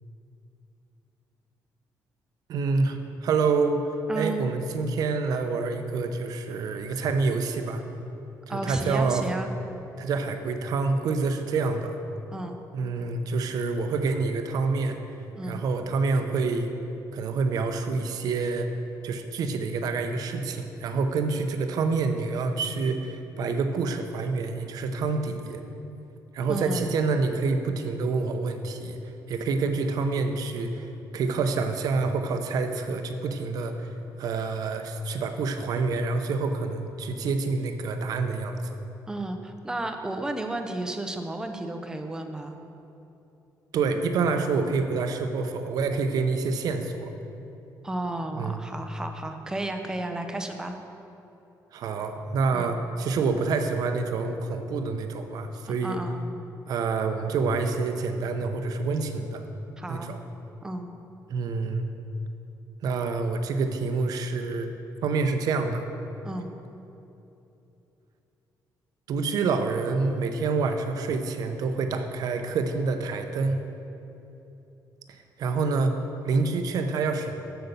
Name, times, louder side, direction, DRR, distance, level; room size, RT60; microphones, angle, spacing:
voice 1, 2.5-3.8 4.1-7.8 8.5-9.3 10.0-12.0 12.7-15.0 15.5-16.7 17.1-18.7 19.0-25.6 26.3-29.0 29.3-30.9 31.1-38.8 43.7-47.1 48.4-48.6 51.7-56.0 56.7-59.4 59.9-60.2 61.3-61.9 62.8-64.7 65.0-65.8 69.1-73.6 75.4-75.9 76.2-77.4, right 4 dB, 60° right, 7 dB, 0.7 m, -27 dB
voice 2, 4.1-4.4 8.5-9.5 12.3-12.6 15.3-15.6 26.5-26.9 39.1-42.6 47.8-50.8 52.5-52.7 55.8-56.2 59.8-60.1 60.6-60.9 66.2-66.5, right 2 dB, 10° right, 5 dB, 0.6 m, -33 dB
7.9 x 6.9 x 6.8 m, 2.9 s
cardioid pair, 180°, 7 cm